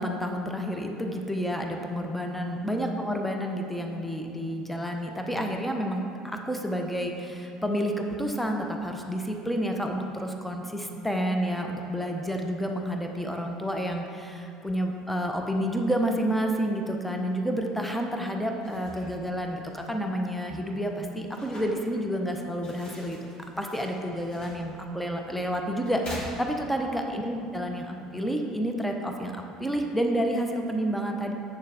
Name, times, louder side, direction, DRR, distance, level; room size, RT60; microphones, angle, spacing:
voice 1, 0.0-23.2 23.6-31.3, equal, 5° left, 2 dB, 0.8 m, -30 dB
sound 1, 18.5-27.0, equal, 35° left, 1.8 m, -46 dB
8.3 x 6.6 x 3.4 m, 2.7 s
hypercardioid pair, 65°, 3 cm